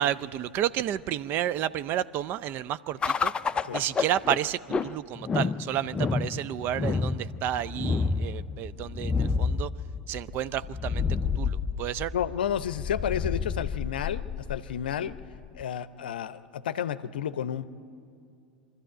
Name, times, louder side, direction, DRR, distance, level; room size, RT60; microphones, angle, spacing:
voice 1, 0.0-3.3 3.7-9.7 10.1-11.1 11.4-12.1, right 11 dB, 40° right, 16 dB, 0.5 m, -31 dB
sound 1, 3.0-15.6, left 5 dB, 20° left, 0.5 m, -30 dB
voice 2, 12.1-14.2 14.5-15.2 15.5-17.6, left 9 dB, 70° left, 15 dB, 0.6 m, -31 dB
24.0 x 12.5 x 8.9 m, 2.5 s
figure-of-eight pair, 90°, 5 cm